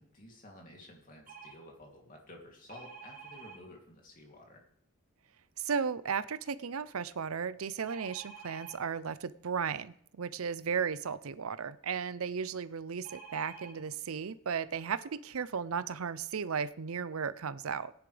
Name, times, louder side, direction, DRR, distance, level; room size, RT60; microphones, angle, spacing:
voice 1, 0.0-4.6, left 1 dB, 40° left, 0 dB, 2.9 m, -52 dB
sound 1, 1.3-1.6 2.7-3.6 7.9-8.8 13.0-13.7 14.5-14.6 14.9-15.1, right 5 dB, 40° right, 3.8 m, -49 dB
voice 2, 5.6-17.9, right 6 dB, 80° right, 15 dB, 0.6 m, -35 dB
17.5 x 10.5 x 3.4 m, 0.68 s
head